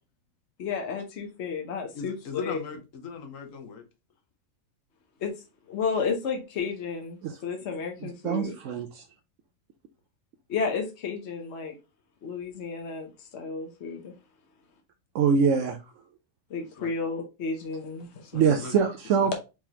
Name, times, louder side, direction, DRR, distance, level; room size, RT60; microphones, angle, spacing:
voice 1, 0.6-2.2 2.4-2.6 5.2-5.3 5.7-8.5 10.5-11.7 12.2-14.1 16.5-18.6, left 5 dB, 60° left, 1.1 m, -32 dB
voice 2, 1.9-3.8 15.2-15.3 16.8-16.9 18.2-18.8 19.2-19.3, left 5 dB, 75° left, 1.3 m, -38 dB
voice 3, 8.2-9.0 15.1-15.8 18.3-19.3, right 6 dB, 75° right, 0.9 m, -24 dB
4.6 x 3.7 x 2.8 m
omnidirectional pair, 1.4 m